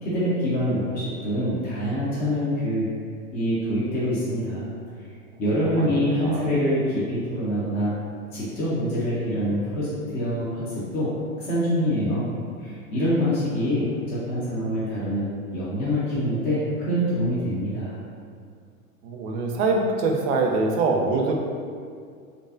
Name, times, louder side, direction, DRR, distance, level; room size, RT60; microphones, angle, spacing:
voice 1, 0.0-2.9 3.3-4.7 5.4-7.9 8.3-11.1 11.4-12.3 12.6-18.0, equal, 20° left, -9 dB, 0.5 m, -25 dB
voice 2, 5.7-6.5 19.0-21.4, right 3 dB, 50° right, 1 dB, 0.5 m, -24 dB
2.5 x 2.2 x 2.4 m, 2.2 s
hypercardioid pair, 95°, 43 cm